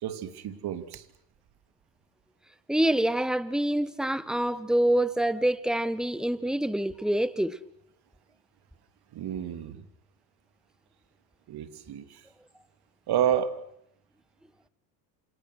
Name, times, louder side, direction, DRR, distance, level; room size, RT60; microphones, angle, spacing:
voice 1, 0.0-1.0 9.1-9.8 11.5-12.2 13.1-13.6, right 10 dB, 50° right, 3.1 m, -30 dB
voice 2, 2.7-7.6, right 1 dB, ahead, 1.6 m, -26 dB
29.0 x 26.5 x 6.4 m
hypercardioid pair, 75°, 49 cm